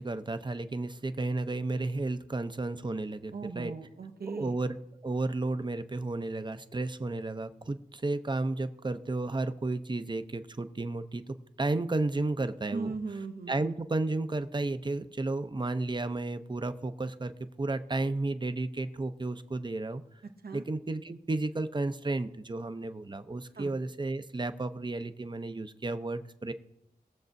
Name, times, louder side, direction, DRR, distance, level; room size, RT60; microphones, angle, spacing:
voice 1, 0.0-3.7 4.2-4.8 5.0-13.0 13.5-20.0 20.5-26.5, right 2 dB, 30° right, 11 dB, 0.6 m, -33 dB
voice 2, 3.3-4.5 12.7-13.8 20.4-20.6 23.6-23.7, right 4 dB, 75° right, 6 dB, 0.8 m, -38 dB
21.0 x 7.3 x 2.6 m, 0.83 s
wide cardioid pair, 80°, 16 cm